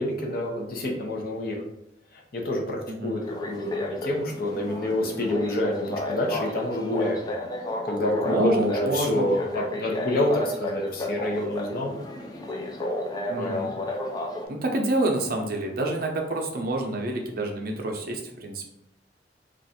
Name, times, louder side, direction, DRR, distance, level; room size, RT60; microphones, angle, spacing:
voice 1, 0.0-1.6 2.1-7.3 7.8-11.9 13.4-13.7, left 1 dB, 55° left, 0 dB, 0.7 m, -28 dB
sound 1, 3.2-14.5, left 1 dB, 20° left, 0.4 m, -32 dB
voice 2, 8.2-9.3 13.3-13.7 14.5-18.7, right 2 dB, 55° right, 2 dB, 0.5 m, -28 dB
2.4 x 2.4 x 4.0 m, 0.80 s
head